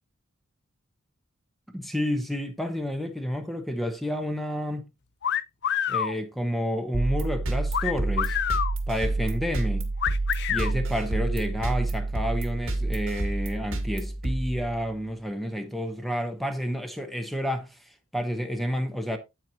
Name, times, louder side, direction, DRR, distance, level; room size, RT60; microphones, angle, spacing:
voice 1, 1.7-4.9 5.9-8.3 8.9-9.9 10.5-19.2, equal, ahead, 1.0 m, -30 dB
sound 1, 5.2-6.1 7.7-8.7 10.0-10.7, left 9 dB, 55° left, 0.6 m, -27 dB
sound 2, 6.9-15.1, right 2 dB, 70° right, 2.1 m, -29 dB
9.1 x 9.0 x 2.9 m
head